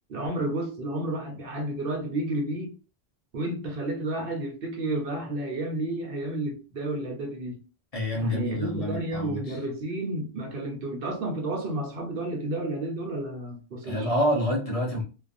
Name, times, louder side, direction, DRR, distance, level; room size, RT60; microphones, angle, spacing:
voice 1, 0.1-2.7 3.3-7.6 8.1-14.1, right 1 dB, 65° right, 0.8 m, -31 dB
voice 2, 7.9-9.6 13.8-15.0, equal, 35° left, 0.8 m, -27 dB
2.4 x 2.3 x 2.5 m
omnidirectional pair, 1.1 m